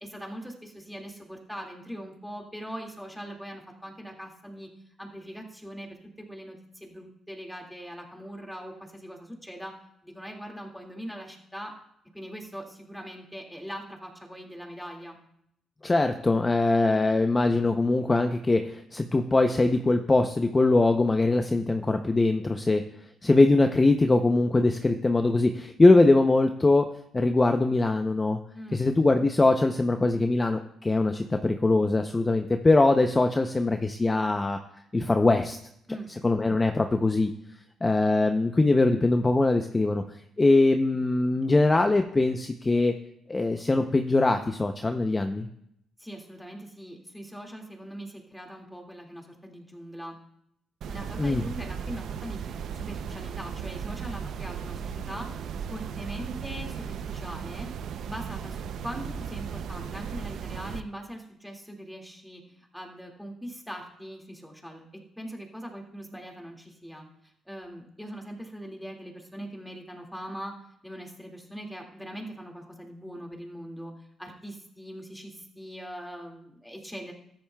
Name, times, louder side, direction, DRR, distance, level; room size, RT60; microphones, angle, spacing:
voice 1, 0.0-4.7 5.0-9.7 10.0-11.7 12.1-15.2 28.5-28.8 35.9-36.1 46.0-50.2 50.9-52.4 52.7-55.3 55.7-57.7 58.0-64.8 65.2-67.1 67.5-70.5 70.8-73.9 74.2-77.1, equal, ahead, 0 dB, 2.1 m, -41 dB
voice 2, 15.8-22.8 23.2-26.9 27.1-28.4 28.7-34.6 34.9-35.6 36.2-37.3 37.8-40.0 40.4-42.9 43.3-45.5 51.2-51.4, left 2 dB, 20° left, 6 dB, 0.6 m, -22 dB
sound 1, 50.8-60.8, right 7 dB, 70° right, 0.5 m, -36 dB
13.5 x 10.5 x 2.3 m, 0.75 s
cardioid pair, 90°, 0 cm